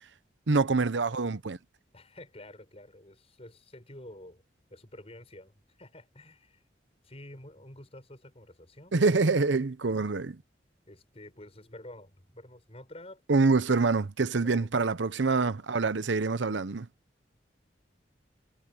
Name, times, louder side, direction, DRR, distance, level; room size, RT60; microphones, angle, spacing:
voice 1, 0.5-1.6 8.9-10.4 13.3-16.9, right 3 dB, 85° right, 0.8 m, -26 dB
voice 2, 1.9-4.4 4.7-6.6 7.0-9.0 10.9-13.2 14.4-14.9, left 1 dB, 35° left, 6.4 m, -49 dB
head